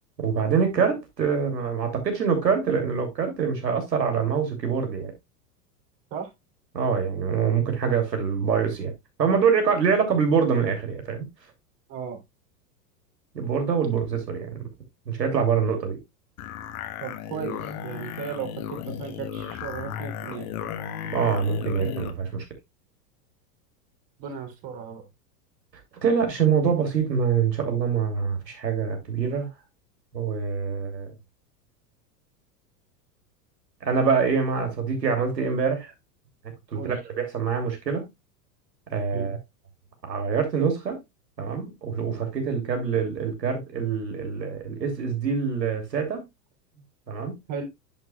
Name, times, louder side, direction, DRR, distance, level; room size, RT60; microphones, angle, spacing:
voice 1, 0.2-5.1 6.7-8.9 9.2-11.3 13.3-14.7 15.1-16.0 21.1-22.4 26.0-29.5 30.1-31.1 33.8-35.9 36.7-38.0 38.9-39.4 40.0-41.0 41.4-46.2 47.1-47.4, right 6 dB, 85° right, 2.9 m, -25 dB
voice 2, 11.9-12.2 17.0-20.5 24.2-25.0 36.7-37.0 39.1-39.3 47.5-47.7, right 7 dB, 50° right, 3.4 m, -35 dB
sound 1, 16.4-22.2, left 9 dB, 60° left, 1.4 m, -35 dB
10.5 x 6.0 x 2.3 m
hypercardioid pair, 95°, 49 cm